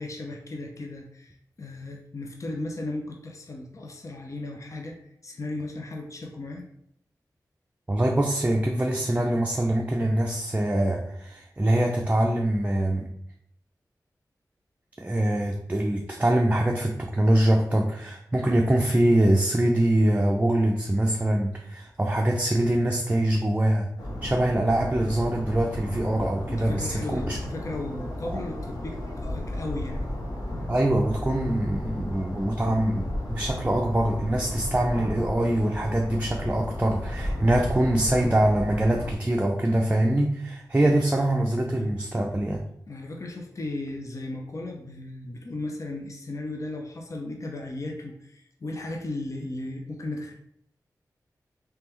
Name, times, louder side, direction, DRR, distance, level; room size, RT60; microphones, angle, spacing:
voice 1, 0.0-5.0 5.2-6.7 26.5-30.0 42.9-50.3, left 2 dB, 50° left, 2 dB, 0.6 m, -35 dB
voice 2, 7.9-13.1 15.0-23.9 24.2-27.4 28.3-28.4 30.7-42.6, right 1 dB, 20° right, 0 dB, 0.5 m, -24 dB
sound 1, 24.0-39.1, left 1 dB, 65° left, 1.1 m, -34 dB
3.3 x 3.3 x 3.0 m, 0.72 s
cardioid pair, 50°, 7 cm